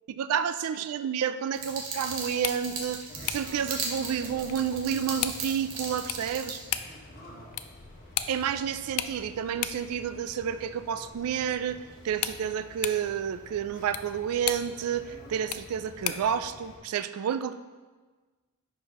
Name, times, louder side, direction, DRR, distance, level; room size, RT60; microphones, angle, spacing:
voice 1, 0.2-6.6 8.3-17.5, right 8 dB, 80° right, 11 dB, 0.3 m, -30 dB
sound 1, 1.5-6.6, right 4 dB, 65° right, 1.2 m, -37 dB
sound 2, 2.2-16.4, left 11 dB, 75° left, 0.4 m, -39 dB
sound 3, 3.1-16.8, left 1 dB, 40° left, 1.4 m, -49 dB
10.5 x 4.5 x 3.0 m, 1.3 s
head